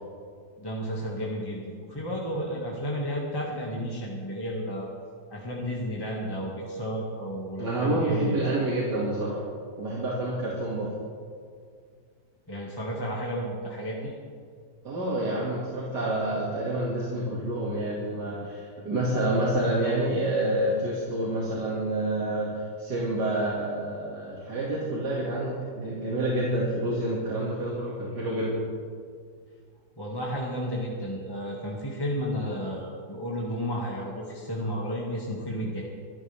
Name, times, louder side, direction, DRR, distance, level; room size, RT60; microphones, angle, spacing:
voice 1, 0.6-4.9 5.3-8.4 12.5-14.1 30.0-35.8, equal, 15° left, -4 dB, 2.1 m, -32 dB
voice 2, 7.6-9.5 9.8-10.9 14.8-22.5 22.8-28.6, right 1 dB, 70° right, -6 dB, 3.0 m, -28 dB
24.5 x 13.0 x 3.6 m, 2.1 s
omnidirectional pair, 1.9 m